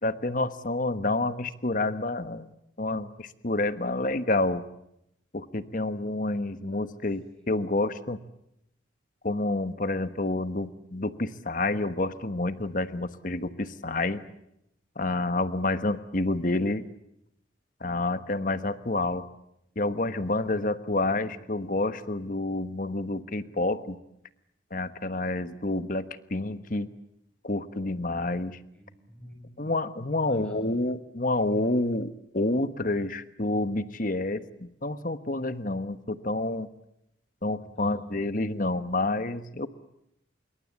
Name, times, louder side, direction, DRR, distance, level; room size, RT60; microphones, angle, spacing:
voice 1, 0.0-2.5 2.8-4.6 5.3-8.2 9.2-14.2 15.0-16.8 17.8-19.2 19.8-24.0 24.7-26.9 27.4-28.6 29.6-36.7 37.4-39.7, left 2 dB, 45° left, 12 dB, 1.3 m, -28 dB
voice 2, 28.7-29.6 30.2-30.8 37.5-38.0, equal, 5° left, 3 dB, 7.2 m, -50 dB
26.5 x 23.0 x 8.3 m, 0.80 s
head